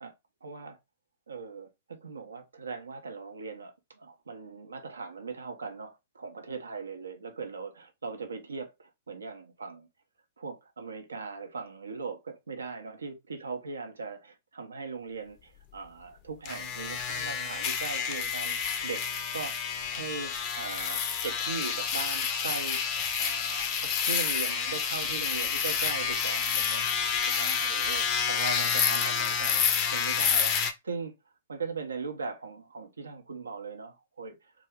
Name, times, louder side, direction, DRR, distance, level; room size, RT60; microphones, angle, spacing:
voice 1, 0.4-0.8 1.3-9.9 10.4-18.6 18.8-26.8 27.3-29.7 29.9-31.1 31.5-34.5, right 4 dB, 75° right, 0.5 m, -39 dB
sound 1, 16.5-30.7, left 7 dB, 30° left, 0.4 m, -29 dB
2.3 x 2.1 x 3.3 m
figure-of-eight pair, 110°, 0 cm